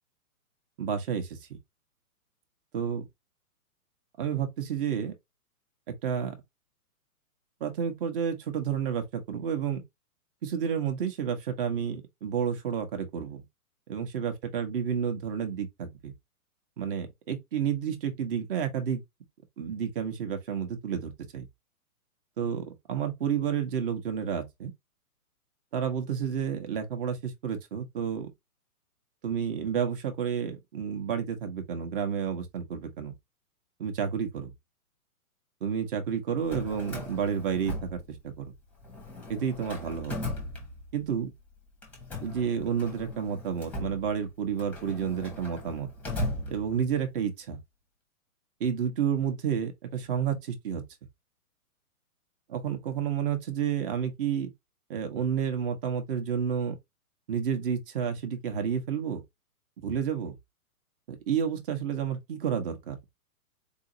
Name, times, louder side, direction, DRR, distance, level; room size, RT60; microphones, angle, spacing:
voice 1, 0.8-1.6 2.7-3.1 4.2-5.1 6.0-6.4 7.6-9.8 10.4-13.4 13.9-16.1 16.8-19.0 19.6-21.5 22.4-24.7 25.7-28.3 29.2-33.1 33.8-34.5 35.6-38.0 38.2-38.5 39.3-40.3 40.9-41.3 42.2-45.9 46.5-47.6 48.6-50.8 52.5-54.5 54.9-56.8 57.3-59.2 59.8-60.4 61.1-63.0, right 7 dB, 35° right, 1.0 m, -30 dB
Drawer open or close, 36.3-38.5 38.8-41.2 41.8-47.1, left 2 dB, 5° left, 0.8 m, -38 dB
4.0 x 2.8 x 2.6 m
hypercardioid pair, 125°, 45 cm